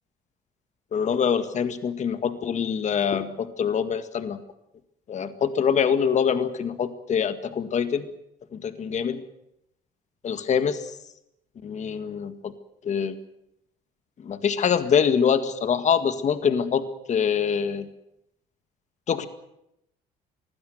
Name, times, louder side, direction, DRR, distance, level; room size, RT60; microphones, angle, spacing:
voice 1, 0.9-4.4 5.1-8.1 8.5-9.2 10.2-10.8 11.6-12.5 12.8-13.2 14.2-17.9 19.1-19.3, left 7 dB, 45° left, 11 dB, 1.9 m, -24 dB
24.0 x 16.0 x 9.3 m, 0.81 s
cardioid pair, 110°, 17 cm